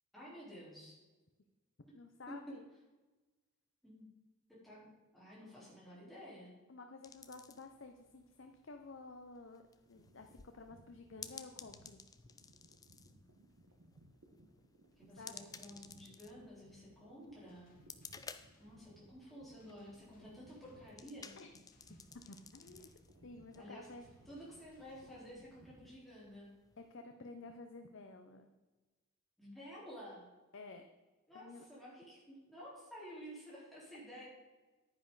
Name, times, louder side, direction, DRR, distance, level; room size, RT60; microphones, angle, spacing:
voice 1, 0.1-1.0 2.3-2.4 3.8-4.0 4.5-4.9 5.1-6.5 15.0-17.7 18.6-21.3 23.5-23.9 24.3-26.5 29.4-30.3 31.3-34.3, equal, ahead, -8 dB, 4.0 m, -52 dB
voice 2, 1.9-2.6 6.7-9.6 9.9-12.0 15.2-15.5 21.4-21.5 21.9-22.0 22.3-22.9 23.2-24.1 26.8-28.5 30.5-30.9 31.3-31.7, left 3 dB, 55° left, 5 dB, 0.7 m, -52 dB
sound 1, 7.0-26.9, left 6 dB, 15° left, 0.3 m, -57 dB
sound 2, 9.8-26.0, right 1 dB, 75° right, 1.4 m, -64 dB
sound 3, 17.5-25.9, left 1 dB, 40° left, 1.5 m, -71 dB
10.5 x 9.7 x 4.0 m, 1.2 s
head